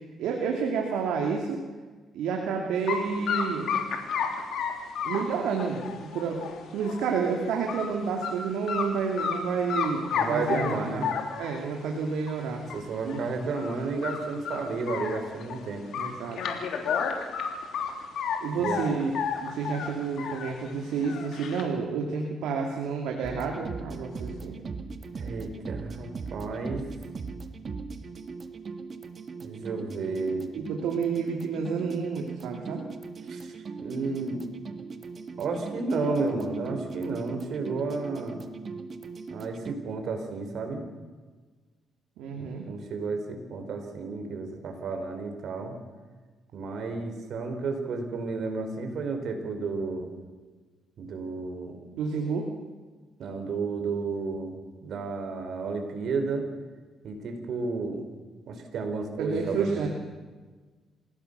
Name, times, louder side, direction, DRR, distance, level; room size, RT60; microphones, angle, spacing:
voice 1, 0.2-1.6 2.1-3.7 5.0-11.1 11.4-12.6 13.0-13.5 16.0-16.4 18.4-19.1 19.4-24.6 30.5-32.8 42.2-42.7 51.9-52.5 59.2-59.9, right 5 dB, 85° right, 1 dB, 2.7 m, -30 dB
sound 1, 2.9-3.0 3.3-7.1 7.4-7.9 8.2-8.3 8.7-9.4 9.7-11.6 12.3-12.4 12.7-12.8 13.1-13.2 13.5-13.8 14.0-15.6 15.9-18.4 18.6-20.5 20.9-21.6, left 7 dB, 75° left, 3.4 m, -31 dB
voice 2, 10.1-11.1 12.7-15.8 18.6-18.8 25.2-26.8 29.4-30.5 33.3-34.4 35.4-38.4 39.3-40.8 42.4-45.8 46.5-50.1 51.0-51.7 53.2-56.5 57.0-58.0 58.5-59.9, right 4 dB, 65° right, 5 dB, 4.7 m, -32 dB
sound 2, 23.2-39.7, right 4 dB, 45° right, 1.8 m, -40 dB
27.5 x 17.5 x 6.9 m, 1.4 s
cardioid pair, 90°, 0 cm